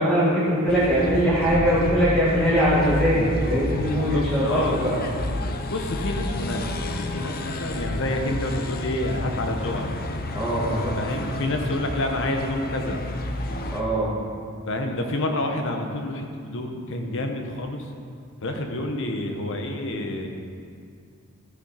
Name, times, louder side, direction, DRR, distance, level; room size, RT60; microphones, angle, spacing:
voice 1, 0.0-5.0 10.3-11.0 13.7-14.1, equal, ahead, -12 dB, 1.8 m, -21 dB
sound 1, 0.7-13.8, left 1 dB, 40° left, 0.7 m, -30 dB
voice 2, 3.6-4.8 5.2-9.9 10.9-13.0 14.7-17.8 18.4-20.3, left 1 dB, 60° left, 3 dB, 1.1 m, -29 dB
13.5 x 6.3 x 5.7 m, 2.3 s
head